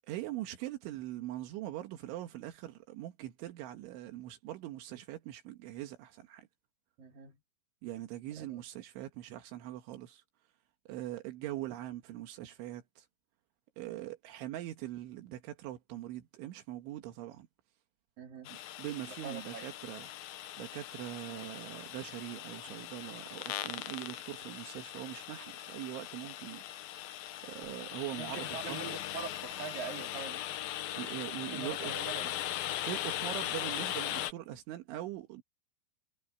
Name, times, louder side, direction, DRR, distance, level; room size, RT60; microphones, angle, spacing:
voice 1, 0.1-6.5 7.8-10.2 10.9-13.1 13.8-17.5 18.5-20.1 20.6-26.6 27.4-28.8 31.0-31.9 32.9-35.4, right 14 dB, 85° right, 3.9 m, -42 dB
voice 2, 7.0-7.4 8.4-8.6 18.2-18.5 19.0-19.7 28.2-30.4 31.4-32.2, right 5 dB, 50° right, 5.2 m, -43 dB
sound 1, 18.4-34.3, left 13 dB, 70° left, 2.3 m, -39 dB
omnidirectional pair, 5.4 m